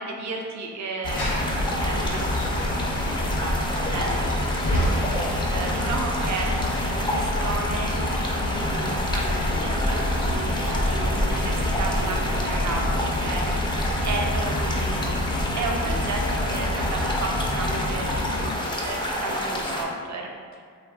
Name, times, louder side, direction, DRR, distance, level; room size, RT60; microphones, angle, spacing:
voice 1, 0.0-2.7 3.1-5.1 5.5-20.6, right 3 dB, 55° right, 1 dB, 0.5 m, -34 dB
sound 1, 1.0-18.5, left 1 dB, 60° left, 0.7 m, -28 dB
sound 2, 1.0-19.8, left 1 dB, 15° left, 0.4 m, -28 dB
2.9 x 2.5 x 2.3 m, 2.1 s
cardioid pair, 70°, 34 cm